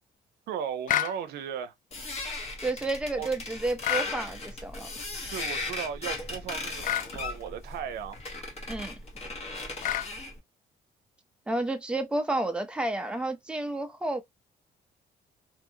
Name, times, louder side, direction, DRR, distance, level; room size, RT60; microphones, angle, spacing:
voice 1, 0.5-1.7 3.2-3.3 5.3-8.2, right 8 dB, 90° right, 0.6 m, -36 dB
sound 1, 0.9-1.2 3.8-4.1 6.8-7.1 9.8-10.1, left 11 dB, 55° left, 0.4 m, -28 dB
sound 2, 1.9-10.4, left 2 dB, 40° left, 1.2 m, -37 dB
voice 2, 2.6-4.9 8.7-8.9 11.5-14.2, right 2 dB, 5° right, 0.6 m, -31 dB
2.7 x 2.5 x 2.6 m
cardioid pair, 100°, 16 cm